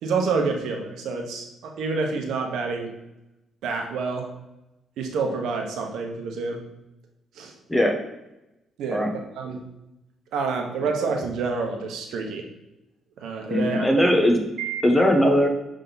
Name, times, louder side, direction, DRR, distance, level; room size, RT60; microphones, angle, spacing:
voice 1, 0.0-3.0 3.6-4.3 5.0-6.6 7.4-7.5 8.8-9.7 10.3-12.5 13.2-14.1 14.6-14.8, right 4 dB, 80° right, 2 dB, 1.0 m, -28 dB
voice 2, 13.5-14.4 14.8-15.5, equal, 10° left, 3 dB, 1.0 m, -19 dB
6.7 x 3.7 x 4.0 m, 0.95 s
cardioid pair, 90°, 0 cm